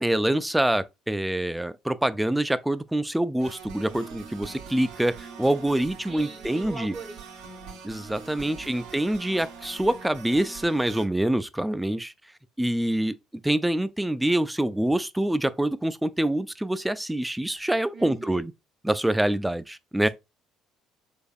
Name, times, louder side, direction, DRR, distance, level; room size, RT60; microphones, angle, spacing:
voice 1, 0.0-6.9 7.8-12.1 12.6-13.2 13.4-18.5 18.8-20.1, right 1 dB, 5° right, 0.3 m, -25 dB
sound 1, 3.4-11.1, right 5 dB, 75° right, 0.8 m, -43 dB
voice 2, 5.8-7.8 17.9-18.4, right 4 dB, 45° right, 0.8 m, -43 dB
3.5 x 3.4 x 2.3 m
hypercardioid pair, 60°, 0 cm